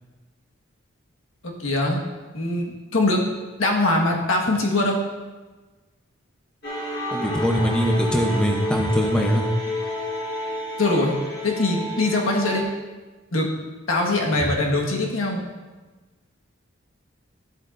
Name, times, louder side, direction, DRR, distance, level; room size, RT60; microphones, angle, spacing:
voice 1, 1.4-2.0 2.3-3.2 3.6-5.0 10.8-11.1 11.4-12.6 13.3-13.5 13.9-15.4, left 2 dB, 80° left, -1 dB, 1.5 m, -22 dB
sound 1, 6.6-12.6, left 1 dB, 50° left, 1.5 m, -30 dB
voice 2, 7.1-9.4 14.4-14.5, equal, 5° left, 0 dB, 0.8 m, -22 dB
13.0 x 7.9 x 2.6 m, 1.3 s
head